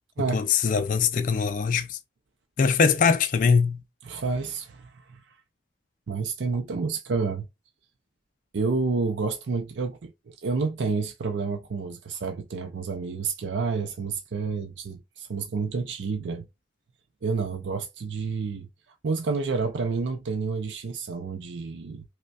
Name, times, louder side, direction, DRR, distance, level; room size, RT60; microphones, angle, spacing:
voice 1, 0.3-2.0 2.6-3.8, left 5 dB, 45° left, 0.3 m, -22 dB
voice 2, 4.0-5.2 6.1-7.5 8.5-16.5 17.2-18.7 19.0-22.0, right 4 dB, 90° right, 0.5 m, -29 dB
5.1 x 2.2 x 2.2 m
head